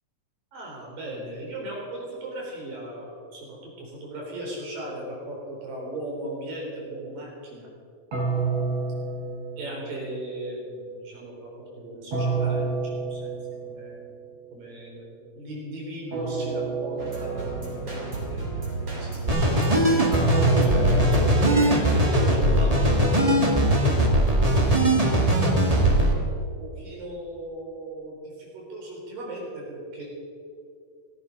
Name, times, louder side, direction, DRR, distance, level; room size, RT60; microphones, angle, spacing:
voice 1, 0.5-7.7 9.6-13.4 13.6-14.0 14.5-19.8 20.6-21.1 21.5-23.9 26.3-30.0, right 1 dB, 80° right, -2 dB, 5.8 m, -37 dB
sound 1, 8.1-10.2 12.1-14.0 16.1-18.0 20.1-22.3, right 4 dB, 50° right, 4.1 m, -29 dB
sound 2, 17.0-22.1, right 3 dB, 35° right, 4.3 m, -32 dB
sound 3, 19.3-26.1, right 1 dB, 15° right, 1.2 m, -20 dB
16.5 x 14.0 x 5.4 m, 2.3 s
omnidirectional pair, 3.9 m